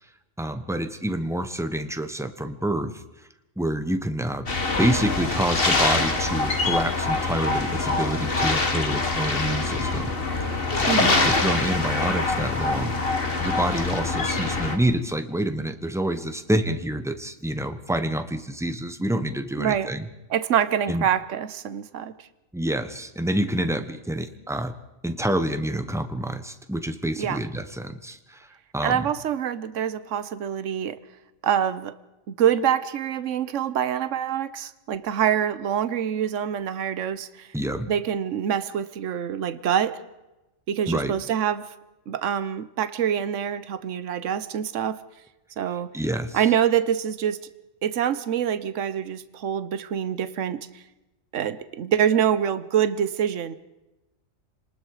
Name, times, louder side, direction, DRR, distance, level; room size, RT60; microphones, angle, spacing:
voice 1, 0.4-3.0 3.6-4.5 4.8-10.1 10.4-10.6 11.0-13.0 13.4-20.1 20.9-21.0 22.5-24.7 25.0-28.5 28.7-29.0 37.5-37.9 40.9-41.1 45.9-46.4, right 1 dB, ahead, 9 dB, 1.1 m, -27 dB
sound 1, 4.5-14.8, left 3 dB, 45° left, 2.0 m, -24 dB
voice 2, 10.9-11.3 19.6-19.9 20.3-22.1 27.2-27.4 28.8-31.0 31.4-31.9 32.3-37.5 37.9-40.0 40.7-41.7 42.1-45.0 45.6-45.9 46.3-47.4 47.8-50.7 51.3-53.5, right 9 dB, 70° right, 14 dB, 1.3 m, -25 dB
29.0 x 20.0 x 4.9 m, 1.0 s
omnidirectional pair, 1.4 m